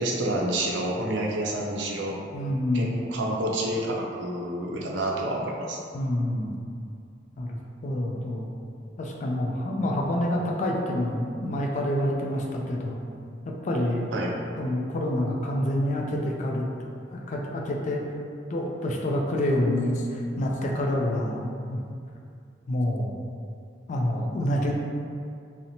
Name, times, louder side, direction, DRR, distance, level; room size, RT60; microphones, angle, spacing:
voice 1, 0.0-2.2 2.7-5.8 14.1-14.3, right 1 dB, 75° right, -1 dB, 0.4 m, -28 dB
voice 2, 2.3-3.0 5.9-6.6 7.4-8.5 9.0-13.0 13.5-14.1 14.6-16.6 17.1-18.0 18.5-21.8 22.7-23.2 23.9-24.7, left 1 dB, 40° left, 0 dB, 0.3 m, -27 dB
2.8 x 2.1 x 2.6 m, 2.4 s
head